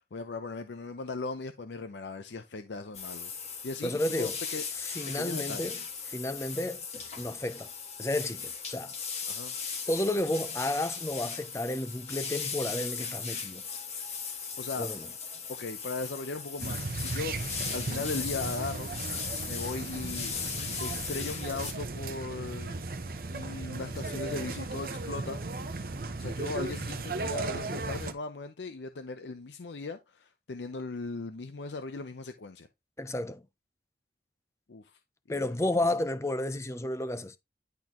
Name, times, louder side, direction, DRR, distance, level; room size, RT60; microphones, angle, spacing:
voice 1, 0.0-3.3 3.6-4.6 5.1-5.9 9.3-9.5 14.6-14.9 15.5-17.4 17.7-18.9 19.4-20.3 20.8-23.0 23.3-25.4 26.2-32.7 34.7-35.0 35.3-35.6 35.9-36.0, left 3 dB, 80° left, 0.6 m, -38 dB
sound 1, 2.9-21.7, left 6 dB, 40° left, 1.5 m, -38 dB
voice 2, 3.8-4.4 4.9-5.8 6.1-6.9 7.2-7.7 8.0-8.9 9.9-13.6 14.8-15.1 33.0-33.4 35.3-37.4, left 1 dB, 15° left, 0.5 m, -31 dB
sound 2, 16.6-28.1, right 3 dB, 55° right, 0.7 m, -36 dB
10.5 x 3.9 x 3.0 m
head